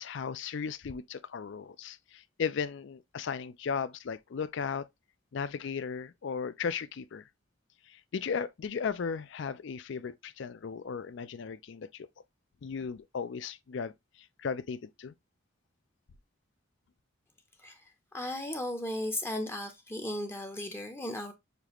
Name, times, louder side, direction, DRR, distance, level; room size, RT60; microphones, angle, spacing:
voice 1, 0.0-4.9 5.3-7.3 7.9-12.1 12.6-13.9 14.4-15.1, left 6 dB, 60° left, 0.4 m, -36 dB
voice 2, 18.1-21.3, left 1 dB, 10° left, 0.6 m, -35 dB
6.7 x 2.4 x 3.0 m
head